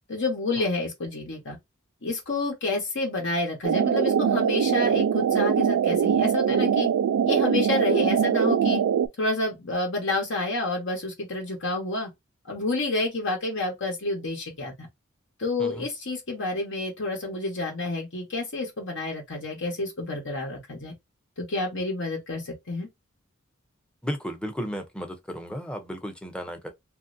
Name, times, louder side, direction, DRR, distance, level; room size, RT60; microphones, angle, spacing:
voice 1, 0.1-1.6 2.0-6.9 7.2-8.8 9.2-12.1 12.5-14.7 15.4-20.9 21.4-22.9, left 2 dB, 60° left, 1.0 m, -29 dB
sound 1, 3.6-9.1, right 8 dB, 90° right, 0.3 m, -22 dB
voice 2, 24.0-26.7, equal, 5° left, 0.7 m, -34 dB
3.1 x 2.6 x 2.5 m
head